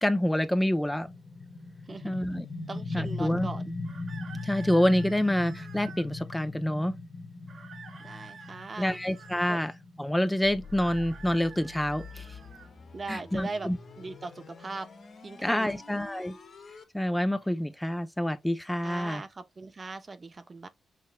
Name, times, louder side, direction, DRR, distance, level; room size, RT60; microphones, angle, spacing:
voice 1, 0.0-1.1 2.0-2.4 2.9-3.5 4.4-7.0 8.8-9.7 10.0-12.3 13.1-13.8 15.4-16.4 16.9-19.2, left 1 dB, 10° left, 0.6 m, -27 dB
sound 1, 1.1-12.5, left 3 dB, 45° left, 1.3 m, -39 dB
voice 2, 1.9-2.4 2.7-3.7 8.0-9.0 9.5-9.6 12.9-13.7 14.0-14.9 15.2-15.7 18.8-20.7, right 3 dB, 40° right, 0.7 m, -39 dB
sound 2, 3.8-6.1 7.5-9.7 10.6-12.7, right 6 dB, 65° right, 1.3 m, -49 dB
sound 3, 10.4-16.8, left 4 dB, 65° left, 1.6 m, -47 dB
5.9 x 3.0 x 2.2 m
supercardioid pair, 60°, 0 cm